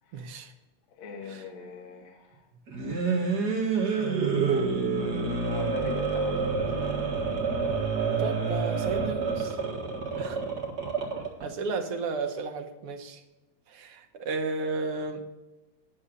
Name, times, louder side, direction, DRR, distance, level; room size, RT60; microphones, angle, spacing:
voice 1, 0.1-0.5 1.3-1.4 8.2-9.6 10.2-10.4 11.4-13.2 13.7-15.2, right 4 dB, 60° right, 5 dB, 1.6 m, -33 dB
voice 2, 1.0-2.4 4.4-6.8 10.1-10.4 11.7-11.9, left 4 dB, 70° left, 0 dB, 2.6 m, -41 dB
sound 1, 2.7-11.4, right 4 dB, 40° right, 2.1 m, -28 dB
10.0 x 7.1 x 6.5 m, 1.1 s
omnidirectional pair, 3.3 m